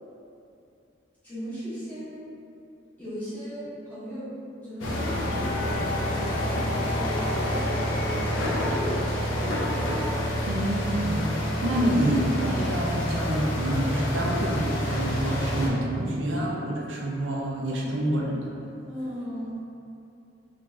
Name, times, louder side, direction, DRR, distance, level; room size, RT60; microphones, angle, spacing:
voice 1, 1.2-2.3 3.0-4.3 4.6-9.7 11.7-11.9 18.8-19.6, equal, 10° left, -13 dB, 1.1 m, -37 dB
sound 1, 4.8-15.7, equal, 90° left, 0.5 m, -28 dB
voice 2, 10.5-11.3 11.6-18.4, right 1 dB, 75° right, -3 dB, 0.5 m, -27 dB
3.8 x 2.6 x 2.4 m, 2.7 s
head